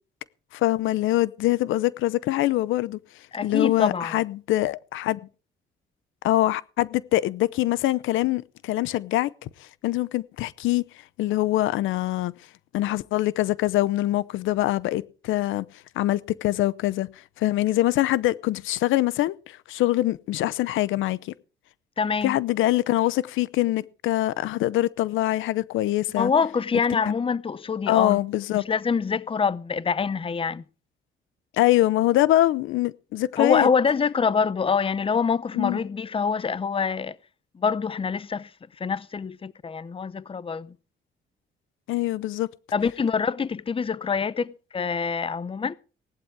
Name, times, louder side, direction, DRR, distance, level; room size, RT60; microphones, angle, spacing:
voice 1, 0.5-3.0 3.4-5.2 6.2-9.5 9.8-10.8 11.2-12.3 12.7-15.6 16.0-17.1 17.4-21.3 22.2-26.3 27.1-27.2 27.9-28.6 31.5-33.7 35.5-35.8 41.9-42.5, left 15 dB, 90° left, 0.7 m, -24 dB
voice 2, 3.3-4.1 22.0-22.4 26.2-28.2 28.5-30.6 33.4-37.2 37.5-38.5 38.8-40.7 42.7-45.7, left 5 dB, 25° left, 0.7 m, -25 dB
17.5 x 11.5 x 4.7 m
cardioid pair, 90°, 20 cm